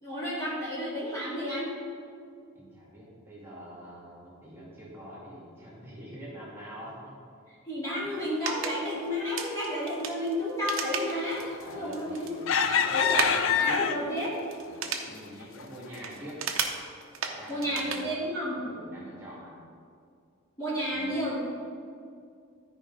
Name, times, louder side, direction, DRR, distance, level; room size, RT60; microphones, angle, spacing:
voice 1, 0.0-1.7 7.7-11.4 11.7-12.3 12.5-14.4 17.5-18.6 20.6-21.5, equal, 15° left, -9 dB, 2.0 m, -31 dB
voice 2, 2.5-7.1 11.6-13.8 15.1-16.4 17.2-18.1 18.6-19.5 20.9-21.2, equal, 10° right, -7 dB, 2.2 m, -45 dB
sound 1, 8.1-18.1, right 6 dB, 70° right, 0.8 m, -36 dB
sound 2, 11.7-12.0 12.5-14.2 14.8-15.0 15.4-15.6, left 7 dB, 65° left, 0.4 m, -25 dB
13.0 x 4.9 x 3.8 m, 2.3 s
head